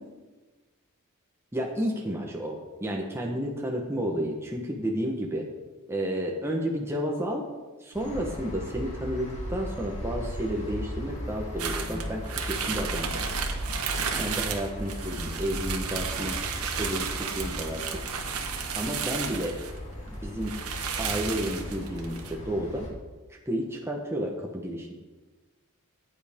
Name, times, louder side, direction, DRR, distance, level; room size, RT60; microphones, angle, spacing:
voice 1, 1.5-5.5 5.9-7.4 7.8-13.1 14.2-16.4 16.7-18.0 18.7-19.6 20.2-20.5 21.0-22.9 23.3-24.9, equal, 10° right, 0 dB, 1.1 m, -31 dB
sound 1, 7.9-22.9, equal, 30° left, 3.0 m, -37 dB
sound 2, 11.6-19.8 20.1-20.2 20.4-22.3, right 6 dB, 85° right, 1.3 m, -33 dB
15.0 x 9.0 x 3.6 m, 1.2 s
head